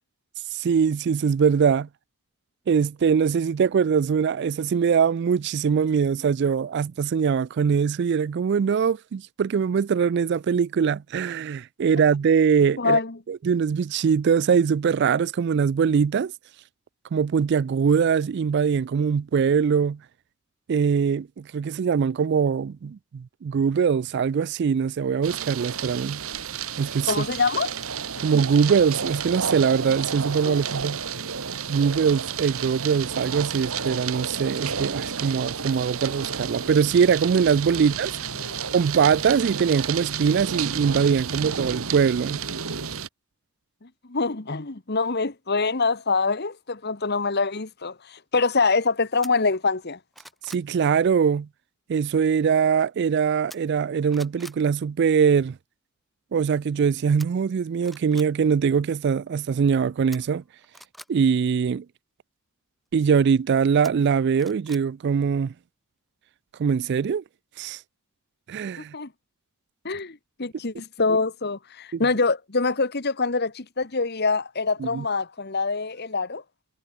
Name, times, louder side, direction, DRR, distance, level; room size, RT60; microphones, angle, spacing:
voice 1, 0.5-1.9 2.7-13.0 13.3-16.3 17.1-20.0 20.7-26.2 26.8-27.3 28.2-31.0 31.7-38.1 38.7-42.4 50.5-51.5 51.9-55.6 56.3-60.4 61.1-61.8 62.9-65.5 66.6-67.2 67.6-67.8 68.5-68.9 71.9-72.0 74.8-75.0, right 6 dB, 50° right, 0.3 m, -22 dB
voice 2, 12.8-13.2 27.1-27.7 30.5-30.6 38.4-38.5 43.8-50.0 68.9-69.1 69.8-76.4, left 4 dB, 50° left, 1.4 m, -25 dB
sound 1, 25.2-43.1, right 7 dB, 70° right, 1.6 m, -31 dB
sound 2, 49.2-49.3 49.8-50.7 53.5-53.8 54.1-54.6 57.2-57.3 57.8-58.3 60.1-61.1 63.8-64.8 65.2-65.3, equal, ahead, 5.2 m, -45 dB
head